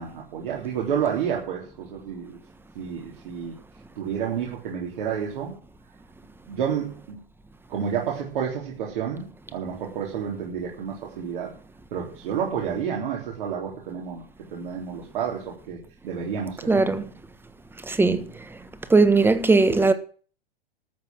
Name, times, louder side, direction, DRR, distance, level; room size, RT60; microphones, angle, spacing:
voice 1, 0.0-2.4 2.8-3.5 4.0-5.6 6.5-7.2 7.7-11.5 11.9-14.2 14.5-16.8, right 7 dB, 60° right, 3.9 m, -30 dB
voice 2, 16.7-17.1 17.9-18.2 18.9-19.9, right 3 dB, 5° right, 1.4 m, -18 dB
13.5 x 7.2 x 7.7 m
hypercardioid pair, 110°, 29 cm